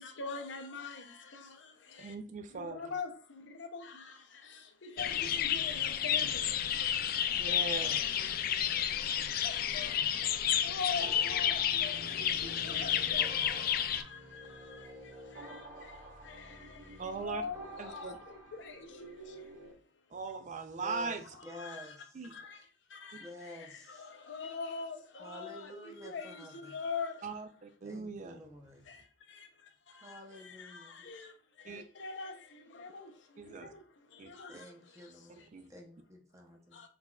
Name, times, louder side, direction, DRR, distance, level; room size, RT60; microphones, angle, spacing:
voice 1, 0.0-2.1 2.5-7.6 8.6-19.5 21.4-21.9 22.3-27.2 28.8-35.5 36.7-36.9, left 4 dB, 70° left, 0.7 m, -45 dB
voice 2, 2.0-2.8 7.4-8.2 17.0-17.4 17.8-18.2 20.1-21.2 22.1-22.3 27.2-28.4 31.6-31.8 33.4-33.7 34.2-34.3 35.5-35.7, right 4 dB, 40° right, 0.3 m, -40 dB
sound 1, 5.0-14.0, left 9 dB, 50° left, 0.3 m, -31 dB
sound 2, 11.0-19.7, right 1 dB, 80° right, 1.7 m, -49 dB
voice 3, 20.8-21.2 21.4-22.2 23.2-24.1 25.2-26.8 27.8-28.9 30.0-31.1 34.5-36.8, equal, 15° right, 0.7 m, -50 dB
4.2 x 4.0 x 2.3 m
head